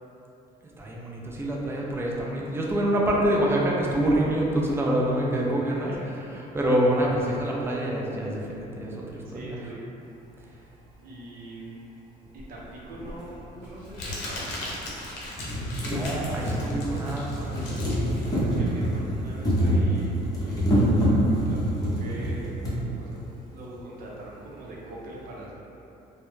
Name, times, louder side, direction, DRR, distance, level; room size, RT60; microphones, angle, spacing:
voice 1, 0.6-5.9 6.5-9.6 15.8-17.9, right 1 dB, 15° right, -3 dB, 0.4 m, -26 dB
voice 2, 5.6-6.1 9.3-9.9 11.0-11.9 12.3-14.8 18.4-20.9 21.3-22.6 22.9-23.2 23.5-25.5, right 1 dB, 55° right, -5 dB, 0.6 m, -42 dB
Crumpling crinkling, 12.4-19.5, left 1 dB, 80° left, 0.7 m, -38 dB
sound 1, 13.2-13.3 14.3-14.4 14.8-14.9 15.2-22.8 23.7-23.8 24.0-24.1, equal, 20° left, 0.6 m, -26 dB
2.2 x 2.0 x 3.0 m, 2.9 s
cardioid pair, 110°, 17 cm